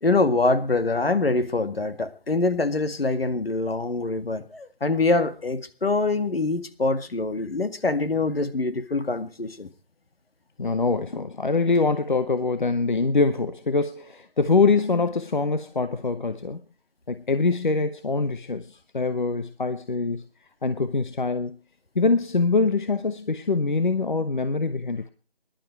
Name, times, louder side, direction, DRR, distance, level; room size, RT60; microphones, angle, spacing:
voice 1, 0.0-9.7, left 3 dB, 70° left, 11 dB, 2.1 m, -24 dB
voice 2, 10.6-16.6 17.1-20.2 20.6-21.6 21.9-25.0, left 4 dB, 50° left, 10 dB, 1.0 m, -24 dB
20.0 x 11.5 x 4.6 m, 0.35 s
figure-of-eight pair, 170°, 30 cm